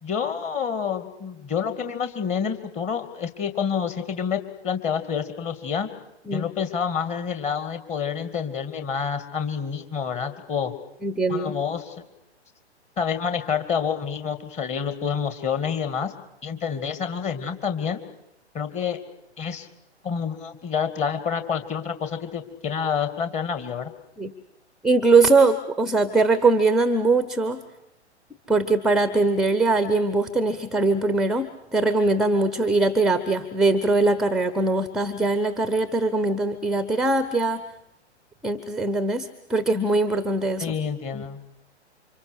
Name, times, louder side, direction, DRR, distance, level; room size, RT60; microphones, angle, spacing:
voice 1, 0.0-5.9 6.3-10.7 11.3-12.0 13.0-16.1 16.4-18.0 18.5-19.0 19.4-19.7 20.0-23.9 40.6-41.4, left 7 dB, 20° left, 9 dB, 2.4 m, -28 dB
voice 2, 11.0-11.5 24.2-24.3 24.8-27.6 28.5-37.6 38.4-40.8 41.1-41.2, right 3 dB, ahead, 12 dB, 1.0 m, -21 dB
29.5 x 26.0 x 6.6 m, 0.81 s
figure-of-eight pair, 120°, 34 cm